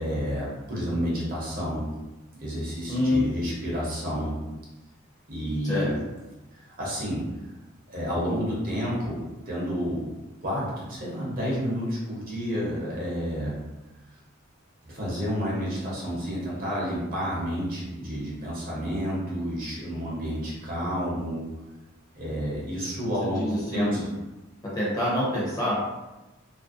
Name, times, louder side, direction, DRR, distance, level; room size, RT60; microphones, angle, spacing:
voice 1, 0.0-1.9 2.4-4.4 5.3-6.0 6.8-7.2 7.9-10.1 10.4-13.6 14.8-21.4 22.1-24.1, equal, 45° right, -6 dB, 0.8 m, -30 dB
voice 2, 2.9-3.2 5.6-5.9 23.2-24.0 24.6-25.8, left 1 dB, 20° left, -7 dB, 0.7 m, -26 dB
2.5 x 2.0 x 2.4 m, 1.1 s
head